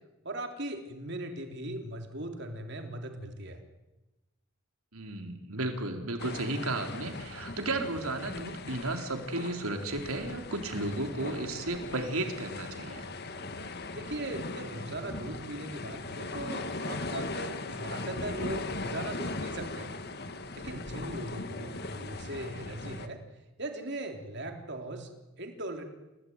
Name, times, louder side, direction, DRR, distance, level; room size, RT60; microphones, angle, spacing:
voice 1, 0.2-3.6 13.9-20.0 20.5-23.2 23.6-25.1 25.4-25.8, right 1 dB, 50° right, 5 dB, 3.6 m, -39 dB
voice 2, 4.9-13.1, right 2 dB, 80° right, 5 dB, 4.0 m, -34 dB
sound 1, 6.2-23.1, left 2 dB, 45° left, 1.8 m, -39 dB
30.0 x 17.0 x 9.7 m, 1.1 s
head